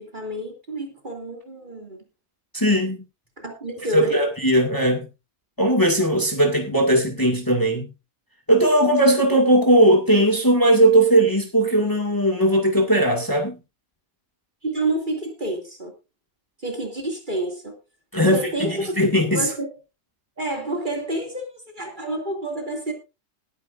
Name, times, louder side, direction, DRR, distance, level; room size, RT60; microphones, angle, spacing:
voice 1, 0.0-2.0 3.4-4.2 14.6-15.9 16.6-17.7 18.2-19.7 20.4-22.9, right 1 dB, 35° right, 2.8 m, -29 dB
voice 2, 2.5-3.0 3.9-5.0 5.6-7.9 8.5-13.6 18.1-19.5, right 1 dB, 15° left, 2.1 m, -18 dB
20.0 x 9.6 x 2.6 m
omnidirectional pair, 1.5 m